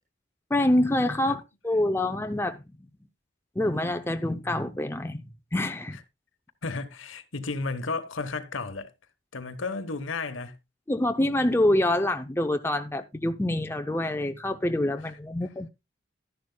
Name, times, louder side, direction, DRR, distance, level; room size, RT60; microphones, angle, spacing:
voice 1, 0.5-2.6 3.6-5.2 5.5-6.0 10.9-15.7, left 1 dB, 10° left, 0.6 m, -26 dB
voice 2, 6.6-8.9 9.3-10.5, left 3 dB, 75° left, 1.2 m, -33 dB
12.5 x 10.5 x 2.2 m
head